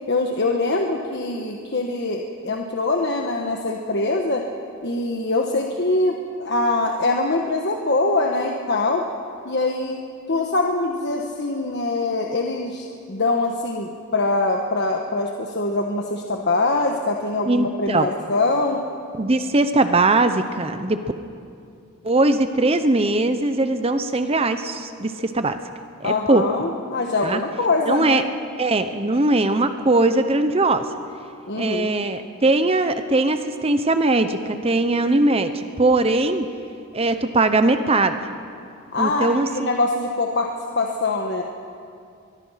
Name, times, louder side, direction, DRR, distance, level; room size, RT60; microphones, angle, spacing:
voice 1, 0.1-4.4 4.8-9.0 9.4-10.0 10.3-18.8 26.0-28.3 31.5-31.9 38.9-41.4, left 2 dB, 50° left, 2 dB, 1.3 m, -23 dB
voice 2, 17.5-18.1 19.2-21.0 22.0-25.6 26.0-26.4 27.2-27.4 27.9-28.2 28.6-30.8 31.6-36.5 36.9-38.2 39.0-39.5, right 2 dB, 25° right, 9 dB, 0.8 m, -20 dB
23.0 x 23.0 x 5.8 m, 2.4 s
head